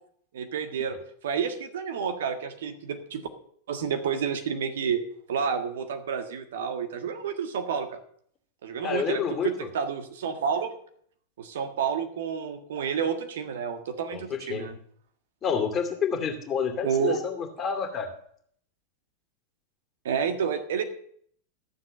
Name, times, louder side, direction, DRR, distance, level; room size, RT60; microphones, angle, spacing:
voice 1, 0.3-1.0 1.2-3.3 3.7-5.0 5.3-8.0 8.6-10.7 11.4-14.7 16.8-17.2 20.0-20.8, right 7 dB, 60° right, 7 dB, 1.7 m, -30 dB
voice 2, 8.8-9.7 14.1-14.7 15.4-18.1, left 6 dB, 25° left, 4 dB, 2.4 m, -29 dB
14.0 x 7.5 x 6.5 m, 0.62 s
figure-of-eight pair, 90°, 0 cm